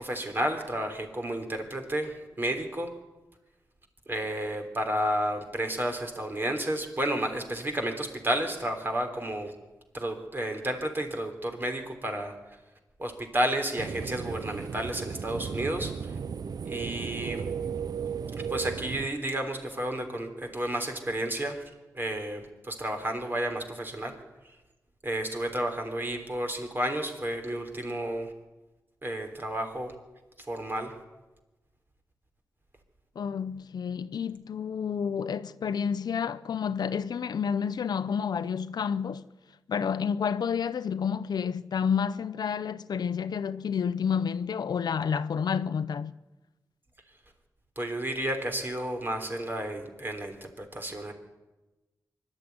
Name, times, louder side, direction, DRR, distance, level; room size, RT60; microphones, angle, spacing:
voice 1, 0.0-2.9 4.1-9.5 9.9-12.3 13.0-16.1 16.6-17.5 18.5-21.6 21.9-24.1 25.0-28.3 29.0-29.9 30.4-30.9 47.8-51.1, right 1 dB, 30° right, 3.6 m, -31 dB
sound 1, 13.8-19.1, right 6 dB, 70° right, 0.6 m, -35 dB
voice 2, 33.2-39.3 39.7-46.1, left 7 dB, 90° left, 0.7 m, -30 dB
24.0 x 12.0 x 9.7 m
wide cardioid pair, 95°, 7 cm